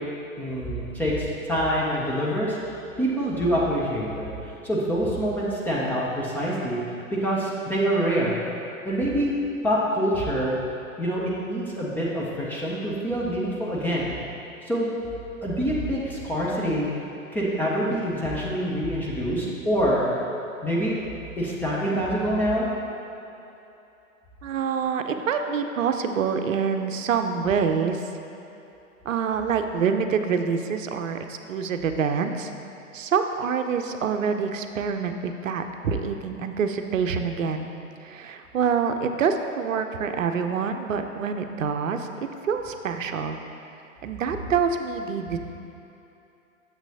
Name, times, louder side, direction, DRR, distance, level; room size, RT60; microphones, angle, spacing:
voice 1, 0.4-2.6 3.0-4.3 4.6-6.8 7.1-8.4 8.9-9.3 9.6-10.5 11.0-14.1 14.7-14.9 15.4-16.9 17.3-20.1 20.6-21.0 21.4-22.7, equal, 5° left, -7 dB, 0.4 m, -25 dB
voice 2, 24.4-28.0 29.1-32.5 32.9-37.7 38.0-42.1 42.4-43.4 44.0-45.4, right 6 dB, 70° right, 6 dB, 0.6 m, -26 dB
8.7 x 7.0 x 2.8 m, 2.9 s
figure-of-eight pair, 105°, 41 cm